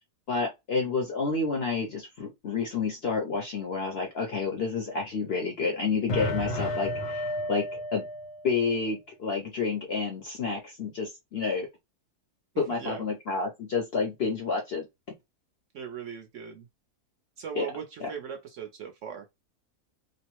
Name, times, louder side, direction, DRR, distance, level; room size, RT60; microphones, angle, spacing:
voice 1, 0.3-8.1 8.4-11.7 12.6-14.8 17.6-17.7 18.0-18.1, left 4 dB, 60° left, 0.7 m, -29 dB
sound 1, 6.1-8.8, left 1 dB, 80° left, 1.4 m, -32 dB
voice 2, 12.5-13.1 15.7-16.7 17.4-19.3, right 7 dB, 65° right, 0.8 m, -39 dB
3.0 x 2.0 x 2.9 m
omnidirectional pair, 1.7 m